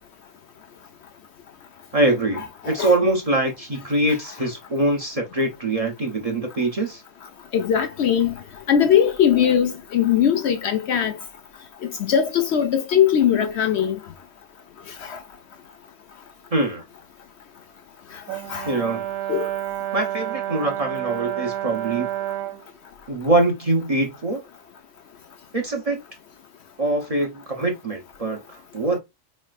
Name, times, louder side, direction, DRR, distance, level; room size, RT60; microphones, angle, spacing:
voice 1, 1.9-7.0 16.5-16.8 18.7-19.1 19.9-22.1 23.1-24.4 25.5-26.0 26.8-29.0, right 2 dB, 30° right, 0.8 m, -23 dB
voice 2, 7.5-8.3 8.7-11.1 11.8-14.0 15.0-15.2 18.5-18.7 19.3-19.5, left 9 dB, 65° left, 0.8 m, -20 dB
Brass instrument, 18.3-22.6, right 13 dB, 85° right, 1.0 m, -29 dB
4.2 x 3.2 x 2.4 m
omnidirectional pair, 1.4 m